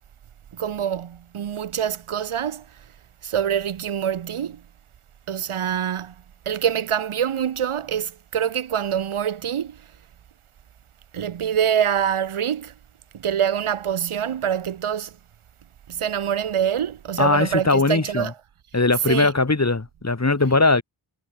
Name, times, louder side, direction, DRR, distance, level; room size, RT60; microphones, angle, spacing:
voice 1, 0.5-2.7 3.2-4.6 5.3-6.1 6.5-9.8 11.1-12.7 13.1-15.1 15.9-18.3 19.1-19.3, right 9 dB, 80° right, 2.0 m, -25 dB
voice 2, 17.2-18.3 18.7-20.8, left 3 dB, 30° left, 6.1 m, -20 dB
cardioid pair, 50°, 49 cm